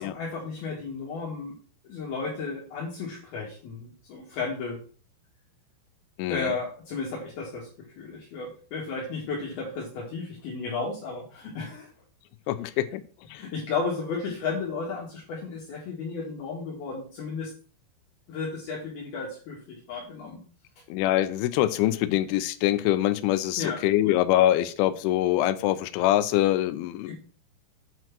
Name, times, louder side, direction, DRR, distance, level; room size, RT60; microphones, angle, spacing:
voice 1, 0.0-1.5 1.8-4.8 6.3-7.7 8.0-11.9 13.4-17.5 18.3-20.4 23.6-24.1 27.1-27.2, left 4 dB, 60° left, -4 dB, 3.4 m, -33 dB
voice 2, 6.2-6.5 12.5-13.0 13.3-13.4 20.9-27.2, left 14 dB, 90° left, 13 dB, 3.1 m, -24 dB
8.9 x 4.6 x 5.9 m, 0.41 s
omnidirectional pair, 5.3 m